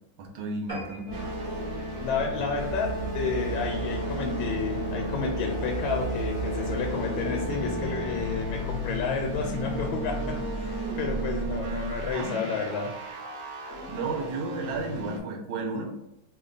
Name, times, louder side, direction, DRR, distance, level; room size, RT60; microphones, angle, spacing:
voice 1, 0.2-1.1 12.1-12.8 13.9-15.9, right 3 dB, 85° right, 1 dB, 1.5 m, -33 dB
sound 1, 0.7-3.4 3.9-4.1 4.5-4.6 4.9-5.0 5.3-5.4, right 1 dB, 25° right, 0.8 m, -43 dB
sound 2, 1.1-11.7, right 1 dB, 55° left, 0.5 m, -33 dB
sound 3, 1.1-15.2, right 2 dB, 60° right, 1.2 m, -37 dB
voice 2, 2.0-12.9, left 5 dB, 80° left, 1 dB, 1.3 m, -31 dB
3.4 x 2.2 x 3.8 m, 0.92 s
omnidirectional pair, 2.2 m